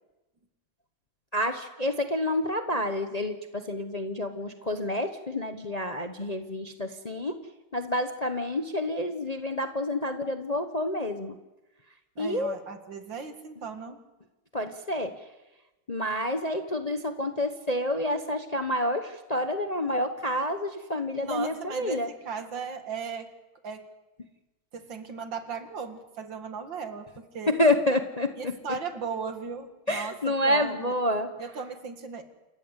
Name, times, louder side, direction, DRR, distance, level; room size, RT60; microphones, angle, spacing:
voice 1, 1.3-7.4 7.7-11.4 12.2-12.5 14.5-15.1 15.9-22.1 27.5-28.5 29.9-31.3, left 1 dB, 35° left, 7 dB, 0.7 m, -28 dB
voice 2, 12.2-14.0 21.2-23.3 23.6-23.9 24.7-27.5 28.4-30.9 31.4-32.2, right 5 dB, 60° right, 7 dB, 2.6 m, -37 dB
28.5 x 14.5 x 8.2 m, 1.1 s
omnidirectional pair, 2.3 m